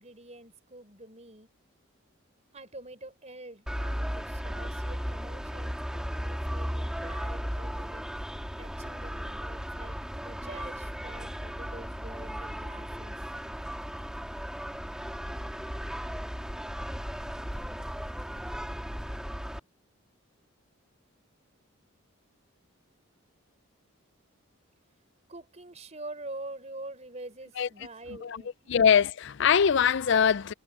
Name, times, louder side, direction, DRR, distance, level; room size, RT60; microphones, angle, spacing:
voice 1, 0.0-1.5 2.5-8.1 8.6-13.2 25.3-28.7, right 2 dB, 30° right, 4.6 m, -46 dB
sound 1, 3.7-19.6, equal, 5° right, 3.1 m, -36 dB
voice 2, 28.7-30.5, left 7 dB, 55° left, 0.4 m, -22 dB
head